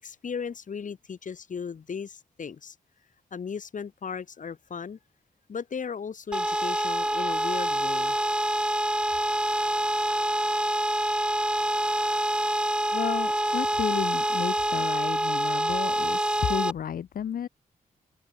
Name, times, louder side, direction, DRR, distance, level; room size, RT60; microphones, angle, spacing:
voice 1, 0.0-2.7 3.3-5.0 5.5-8.2, left 6 dB, 60° left, 7.7 m, -36 dB
sound 1, 6.3-16.7, right 1 dB, 5° right, 0.7 m, -26 dB
voice 2, 12.9-17.5, left 9 dB, 75° left, 1.4 m, -32 dB
cardioid pair, 80°, 15 cm